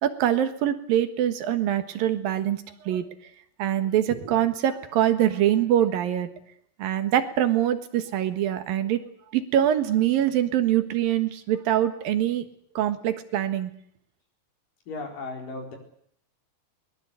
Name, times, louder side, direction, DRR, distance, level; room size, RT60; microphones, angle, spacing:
voice 1, 0.0-3.1 3.6-6.3 6.8-9.0 9.3-12.5 12.7-13.7, right 11 dB, 80° right, 10 dB, 3.2 m, -24 dB
voice 2, 14.9-15.8, left 3 dB, 70° left, 2 dB, 6.2 m, -35 dB
22.0 x 21.0 x 8.3 m, 0.66 s
omnidirectional pair, 4.1 m